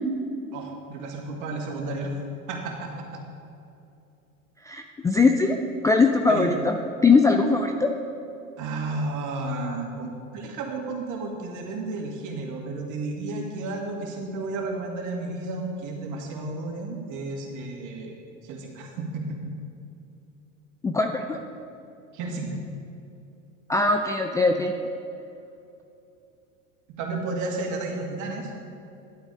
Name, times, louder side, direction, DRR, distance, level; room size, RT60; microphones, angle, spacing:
voice 1, 0.5-2.1 2.5-3.2 6.3-6.5 8.6-18.1 18.4-19.4 22.1-22.5 27.0-28.5, right 2 dB, 45° right, 0 dB, 2.3 m, -32 dB
voice 2, 4.7-5.6 5.8-6.8 7.0-7.9 20.8-21.4 23.7-24.7, left 3 dB, 10° left, 4 dB, 0.3 m, -21 dB
11.5 x 8.2 x 4.9 m, 2.7 s
hypercardioid pair, 90°, 40 cm